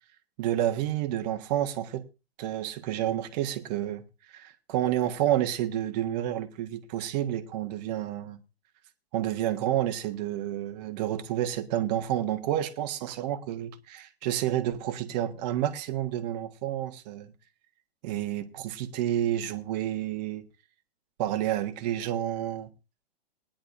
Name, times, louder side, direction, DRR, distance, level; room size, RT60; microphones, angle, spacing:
voice 1, 0.4-2.0 2.4-8.4 9.1-17.3 18.0-20.5 21.2-22.7, right 12 dB, 40° right, 1.3 m, -30 dB
19.5 x 10.0 x 2.6 m
hypercardioid pair, 120°, 31 cm